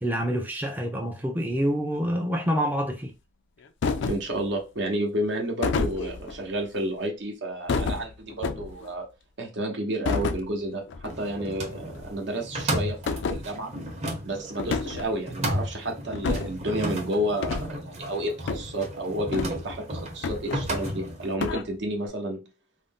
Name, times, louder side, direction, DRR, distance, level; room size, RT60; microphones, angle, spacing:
voice 1, 0.0-3.1, equal, 10° right, 0.4 m, -27 dB
sound 1, 3.8-4.3 5.6-6.4 7.7-8.9 10.1-10.5 10.9-11.1 11.4-11.5 12.0-12.1 13.1-13.4 14.6-15.1 16.1-16.6 17.4-17.7 18.5-18.7 19.3-19.8 20.2-21.0 21.4-21.6, left 4 dB, 70° left, 0.4 m, -29 dB
voice 2, 4.1-9.1 9.4-13.7 14.2-22.5, right 1 dB, 70° right, 0.9 m, -31 dB
sound 2, 11.1-21.3, right 1 dB, 35° right, 0.8 m, -34 dB
2.5 x 2.1 x 3.6 m
head